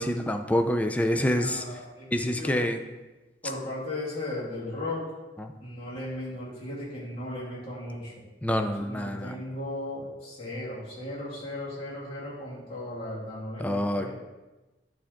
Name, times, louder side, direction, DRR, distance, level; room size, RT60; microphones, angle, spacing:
voice 1, 0.0-1.6 2.1-2.8 5.4-5.5 8.4-9.3 13.6-14.1, left 1 dB, 10° left, 6 dB, 0.3 m, -27 dB
voice 2, 1.1-2.6 3.4-5.1 5.6-8.1 8.8-14.1, left 1 dB, 30° left, -8 dB, 2.2 m, -36 dB
8.5 x 3.4 x 3.7 m, 1.1 s
head